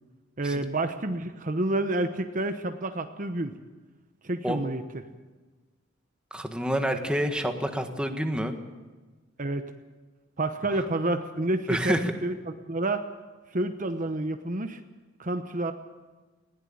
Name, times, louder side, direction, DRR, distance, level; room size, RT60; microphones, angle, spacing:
voice 1, 0.4-3.5 4.2-4.8 9.4-9.6 10.4-13.0 13.5-14.8 15.2-15.7, right 2 dB, 40° right, 7 dB, 1.0 m, -29 dB
voice 2, 6.3-8.5 11.7-12.1, equal, 5° right, 5 dB, 1.6 m, -28 dB
20.0 x 16.5 x 8.7 m, 1.3 s
head